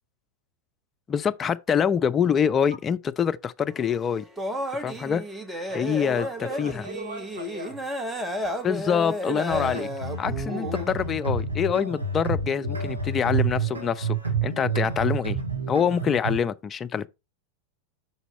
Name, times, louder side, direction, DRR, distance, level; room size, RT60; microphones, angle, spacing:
voice 1, 1.1-4.2 4.8-5.2 5.7-6.3 6.6-6.7 8.6-9.9 10.2-14.2 14.4-15.4 15.7-17.1, left 7 dB, 25° left, 0.4 m, -25 dB
sound 1, 3.7-10.8, equal, 5° right, 1.0 m, -32 dB
voice 2, 5.7-7.9, right 3 dB, 55° right, 3.6 m, -39 dB
sound 2, 9.5-16.4, right 4 dB, 75° right, 2.4 m, -29 dB
6.0 x 4.1 x 5.4 m
figure-of-eight pair, 90°, 0 cm